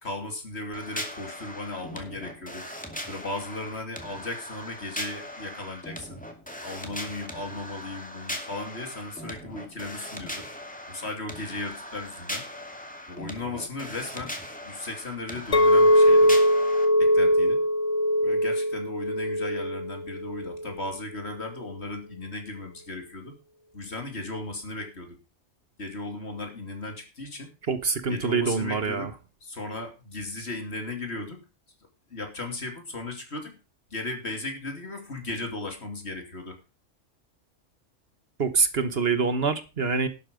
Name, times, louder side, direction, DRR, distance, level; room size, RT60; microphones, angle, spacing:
voice 1, 0.0-2.7 3.1-6.2 6.6-10.5 10.9-12.4 13.1-14.3 14.6-16.4 17.0-17.6 18.2-23.4 23.7-25.2 25.8-27.5 28.1-29.1 29.4-31.4 32.1-33.5 33.9-36.6, left 2 dB, 55° left, 4 dB, 3.2 m, -36 dB
sound 1, 0.7-16.9, left 1 dB, 5° left, 2.3 m, -39 dB
Chink clink, 15.5-20.7, equal, 30° left, 1.0 m, -21 dB
voice 2, 27.7-29.1 38.4-40.1, right 5 dB, 55° right, 11 dB, 1.4 m, -25 dB
12.0 x 8.5 x 5.2 m, 0.30 s
omnidirectional pair, 1.3 m